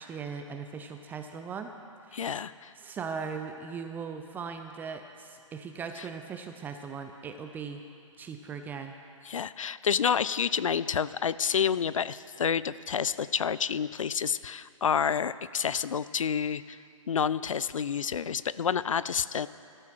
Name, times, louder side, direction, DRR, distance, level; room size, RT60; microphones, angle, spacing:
voice 1, 0.0-1.7 2.1-2.4 2.8-7.8 8.2-9.0, right 5 dB, 10° right, 6 dB, 0.5 m, -39 dB
voice 2, 2.1-2.7 9.3-16.8 17.1-19.5, left 7 dB, 75° left, 17 dB, 0.5 m, -29 dB
17.5 x 13.0 x 4.6 m, 2.4 s
figure-of-eight pair, 135°, 17 cm